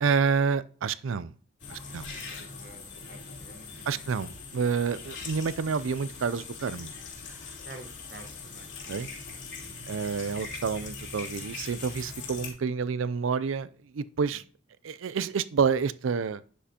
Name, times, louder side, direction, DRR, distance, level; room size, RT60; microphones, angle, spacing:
voice 1, 0.0-1.3 1.7-2.1 3.9-6.9 8.9-9.1 9.9-14.4 14.8-16.4, right 5 dB, 90° right, 0.4 m, -28 dB
sound 1, 1.6-12.5, left 4 dB, 70° left, 3.0 m, -41 dB
voice 2, 1.9-4.1 7.6-9.2 9.6-10.0 14.2-14.4, right 2 dB, 50° right, 1.2 m, -51 dB
10.0 x 7.3 x 2.9 m
head